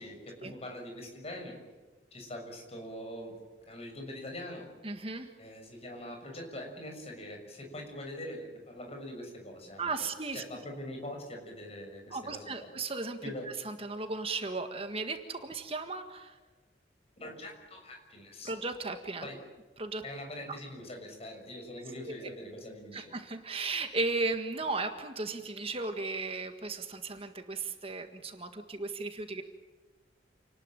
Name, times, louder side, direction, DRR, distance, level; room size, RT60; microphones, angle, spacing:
voice 1, 0.0-1.6 2.1-3.3 3.7-4.7 5.4-9.9 10.3-12.7 13.2-13.5 17.2-18.6 19.2-19.4 20.0-23.1, left 1 dB, 35° left, 3 dB, 6.5 m, -43 dB
voice 2, 4.8-5.3 9.8-10.4 12.1-13.2 13.5-16.4 18.4-19.3 19.8-20.0 22.9-29.4, right 3 dB, 30° right, 6 dB, 1.7 m, -35 dB
29.0 x 20.0 x 9.1 m, 1.3 s
head